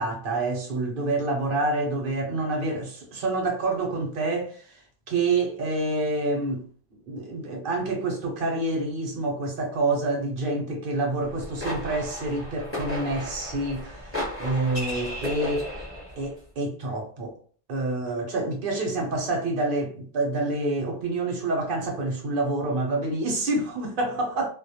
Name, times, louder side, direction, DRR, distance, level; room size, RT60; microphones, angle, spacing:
voice 1, 0.0-4.8 5.1-6.6 7.1-15.7 16.2-17.4 17.7-24.5, right 2 dB, 55° right, 0.8 m, -27 dB
sound 1, 11.2-16.3, left 1 dB, 15° left, 0.7 m, -34 dB
2.2 x 2.0 x 2.7 m
omnidirectional pair, 1.2 m